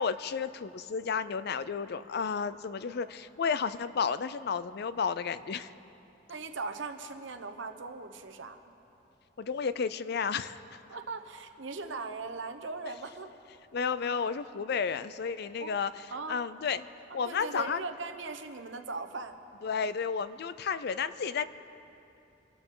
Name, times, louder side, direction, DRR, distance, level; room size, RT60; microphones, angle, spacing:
voice 1, 0.0-5.7 9.4-10.8 13.7-16.0 16.3-16.9 17.1-17.8 19.6-21.4, left 6 dB, 55° left, 15 dB, 0.5 m, -32 dB
voice 2, 6.3-8.7 10.9-13.3 15.6-15.7 16.1-16.4 17.1-19.4, right 3 dB, 75° right, 8 dB, 1.0 m, -39 dB
26.0 x 13.0 x 3.8 m, 2.9 s
head